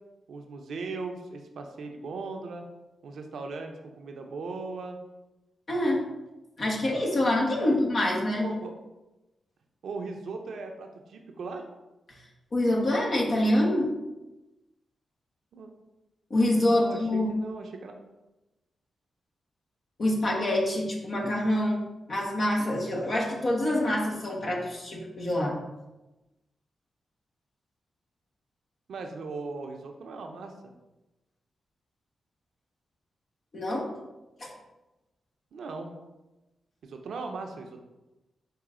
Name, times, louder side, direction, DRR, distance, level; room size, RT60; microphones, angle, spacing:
voice 1, 0.3-2.6 3.0-5.0 7.6-7.8 8.4-8.7 9.8-11.6 15.5-15.7 16.6-17.9 28.9-30.7 35.5-35.9 36.8-37.8, right 3 dB, 75° right, 4 dB, 0.6 m, -38 dB
voice 2, 5.7-6.0 6.6-8.5 12.5-13.9 16.3-17.3 20.0-21.8 22.1-25.6 33.5-33.9 34.4-34.5, left 1 dB, 60° left, -2 dB, 1.2 m, -26 dB
5.0 x 2.7 x 3.7 m, 1.0 s
supercardioid pair, 45°, 0 cm